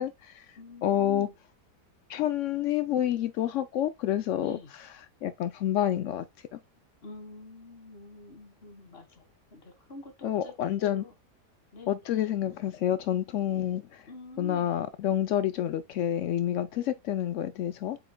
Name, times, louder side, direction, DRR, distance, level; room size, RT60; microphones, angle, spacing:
voice 1, 0.0-0.4 0.8-1.3 2.1-4.6 5.2-6.2 6.5-6.6 10.2-11.0 11.9-14.0 14.4-18.0, left 11 dB, 80° left, 0.6 m, -28 dB
voice 2, 0.6-1.3 4.4-4.7 7.0-11.1 11.7-11.9 14.1-14.8, left 2 dB, 35° left, 1.7 m, -47 dB
8.1 x 5.7 x 2.2 m
omnidirectional pair, 1.8 m